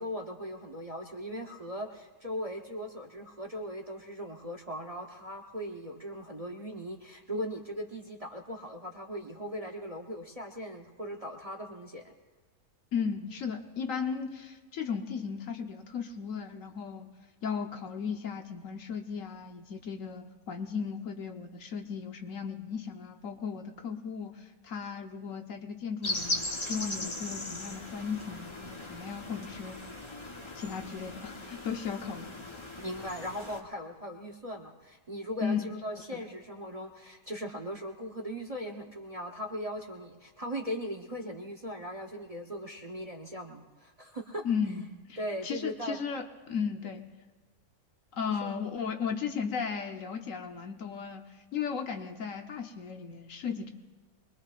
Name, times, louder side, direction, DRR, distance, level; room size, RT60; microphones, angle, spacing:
voice 1, 0.0-12.1 32.8-44.5 45.2-46.0 48.2-48.5, equal, 30° right, 2 dB, 0.8 m, -39 dB
voice 2, 12.9-17.1 17.4-29.8 30.5-32.3 35.4-35.7 36.1-36.2 44.4-45.2 45.4-47.0 48.1-51.2 51.5-53.7, left 6 dB, 60° left, 5 dB, 1.2 m, -35 dB
sound 1, 26.0-33.6, left 2 dB, 20° left, 1.0 m, -38 dB
24.5 x 21.0 x 2.5 m, 1.2 s
omnidirectional pair, 1.6 m